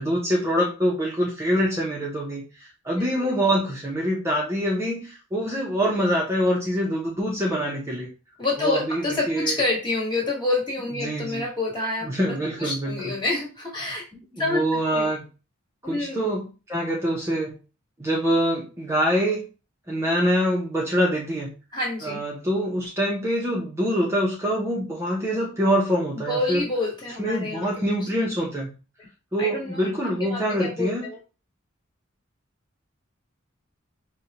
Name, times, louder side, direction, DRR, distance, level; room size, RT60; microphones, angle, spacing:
voice 1, 0.0-8.1 8.6-9.5 11.0-11.5 12.0-13.2 14.3-15.2 15.8-17.5 18.0-19.4 19.9-21.5 22.0-26.6 27.2-28.7 29.3-31.1, equal, 15° right, -3 dB, 0.6 m, -25 dB
voice 2, 2.9-3.3 8.4-14.0 14.4-14.6 14.9-15.1 15.8-16.2 21.7-22.2 26.3-27.7 28.0-28.1 29.4-29.8 30.2-31.2, left 2 dB, 25° left, -3 dB, 1.3 m, -28 dB
5.0 x 2.1 x 2.8 m, 0.33 s
head